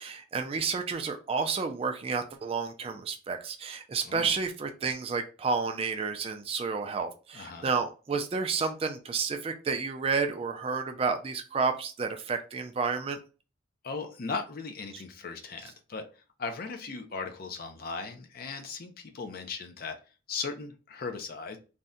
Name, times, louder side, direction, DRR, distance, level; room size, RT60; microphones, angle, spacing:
voice 1, 0.0-13.2 14.9-15.0, right 5 dB, 30° right, 6 dB, 0.3 m, -31 dB
voice 2, 4.0-4.3 7.3-7.7 13.8-16.0 16.4-20.0 20.3-21.6, left 4 dB, 50° left, 6 dB, 0.4 m, -37 dB
2.6 x 2.1 x 3.5 m, 0.34 s
head